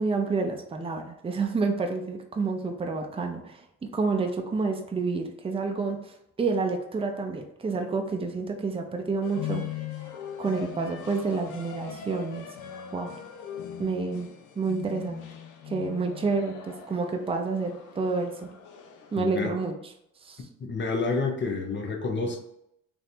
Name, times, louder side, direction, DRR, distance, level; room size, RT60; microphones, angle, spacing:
voice 1, 0.0-6.1 6.4-9.6 10.4-12.5 12.9-13.1 13.8-14.3 14.6-15.2 15.7-18.5 19.1-19.7 20.3-20.4, right 4 dB, 20° right, 3 dB, 0.6 m, -29 dB
sound 1, 9.2-19.4, left 9 dB, 80° left, 0.6 m, -40 dB
voice 2, 19.2-19.5 20.6-22.4, left 3 dB, 40° left, 2 dB, 0.8 m, -29 dB
3.2 x 2.6 x 4.3 m, 0.78 s
cardioid pair, 90°, 30 cm